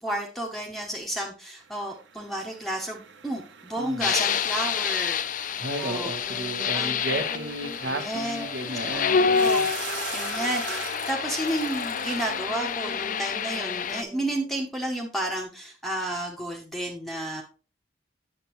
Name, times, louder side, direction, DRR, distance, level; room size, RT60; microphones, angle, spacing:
voice 1, 0.0-5.5 5.8-6.1 6.7-7.0 7.9-8.5 8.9-17.4, right 1 dB, ahead, 0 dB, 0.8 m, -32 dB
sound 1, 1.6-12.4, right 7 dB, 80° right, 0.8 m, -43 dB
voice 2, 3.8-4.1 5.6-9.7, right 1 dB, 65° right, 8 dB, 1.2 m, -33 dB
sound 2, 4.0-14.0, left 6 dB, 45° left, 0.4 m, -28 dB
sound 3, 6.2-14.7, right 2 dB, 35° right, 0.5 m, -44 dB
8.7 x 6.9 x 3.0 m, 0.36 s
head